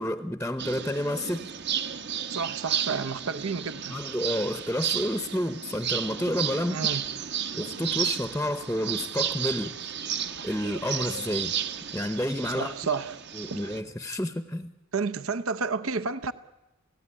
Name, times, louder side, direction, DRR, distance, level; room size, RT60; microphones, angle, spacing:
voice 1, 0.0-1.5 3.9-6.8 7.5-9.7 10.4-11.5 11.9-12.7 13.3-14.7, left 1 dB, 5° left, 11 dB, 0.8 m, -30 dB
sound 1, 0.6-13.8, right 8 dB, 50° right, 1.1 m, -33 dB
voice 2, 2.3-4.0 6.7-7.0 12.5-13.2 13.5-13.6 14.9-16.3, right 5 dB, 70° right, 12 dB, 0.8 m, -30 dB
28.5 x 17.0 x 9.9 m, 1.0 s
head